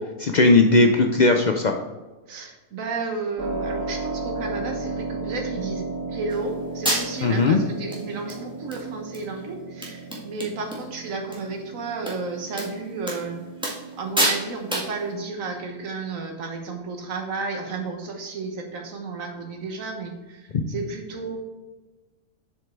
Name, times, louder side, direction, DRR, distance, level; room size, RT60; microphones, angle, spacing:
voice 1, 0.2-1.7 7.2-7.6 20.5-20.6, left 3 dB, 75° left, 4 dB, 0.4 m, -17 dB
voice 2, 2.3-5.8 6.1-13.4 14.0-21.4, right 3 dB, 65° right, 3 dB, 1.6 m, -32 dB
Keyboard (musical), 3.4-15.9, right 3 dB, 90° right, 2.0 m, -35 dB
sound 1, 6.3-6.4 6.8-7.4 7.9-8.0 8.3-8.8 9.1-9.2 9.5-9.6 9.8-10.8 11.1-11.4 12.1-12.2 12.5-12.7 13.1-13.2 13.6-13.9 14.2-14.4 14.7-14.9, right 1 dB, 5° right, 1.6 m, -27 dB
7.2 x 5.3 x 4.6 m, 1.2 s
omnidirectional pair, 1.5 m